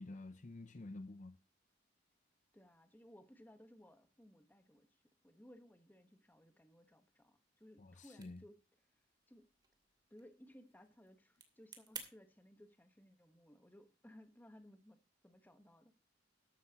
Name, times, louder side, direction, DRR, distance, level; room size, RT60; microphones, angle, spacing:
voice 1, 0.0-1.4 7.8-8.4, left 2 dB, 40° left, 0.6 m, -50 dB
voice 2, 2.5-8.9 9.3-9.5 10.1-15.9, equal, 10° left, 1.3 m, -61 dB
sound 1, 7.9-12.1, right 5 dB, 25° right, 2.5 m, -56 dB
13.5 x 11.5 x 2.9 m
head